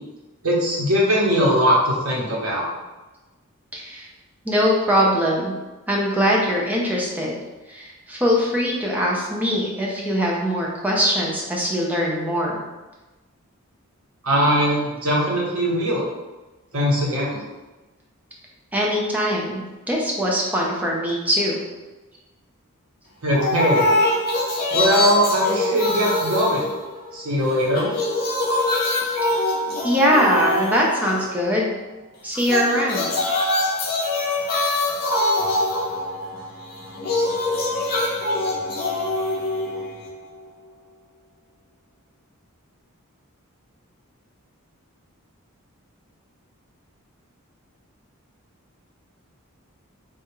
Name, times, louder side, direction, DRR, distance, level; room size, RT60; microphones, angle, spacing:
voice 1, 0.4-2.7 14.2-16.1 16.7-17.4 23.2-23.9 24.7-26.7 27.1-27.9, equal, 85° right, -4 dB, 0.9 m, -20 dB
voice 2, 3.7-4.1 4.4-5.5 5.9-7.4 7.7-12.6 18.7-19.6 19.9-21.6 29.0-29.1 29.8-31.7 32.2-33.1, equal, 5° right, -3 dB, 0.5 m, -22 dB
sound 1, 23.3-27.3 27.6-31.4 32.3-40.3, left 2 dB, 45° left, 0.6 m, -24 dB
3.4 x 2.3 x 3.0 m, 1.1 s
head